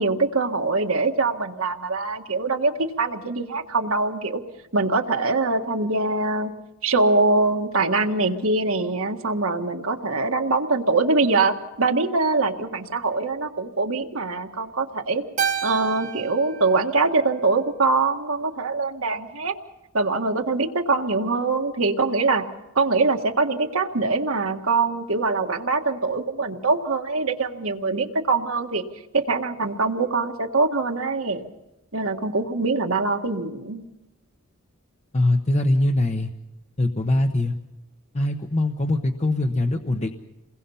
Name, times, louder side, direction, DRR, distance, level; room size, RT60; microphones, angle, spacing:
voice 1, 0.0-4.4 4.7-6.5 6.8-15.2 15.6-19.5 19.9-22.4 22.8-28.9 29.1-31.4 31.9-33.8, right 3 dB, 70° right, 5 dB, 1.8 m, -23 dB
Keyboard (musical), 15.4-17.9, right 7 dB, 35° right, 1.2 m, -30 dB
voice 2, 35.1-36.3 36.8-37.5 38.1-40.1, left 1 dB, 35° left, 5 dB, 1.0 m, -22 dB
29.0 x 21.5 x 5.7 m, 0.95 s
head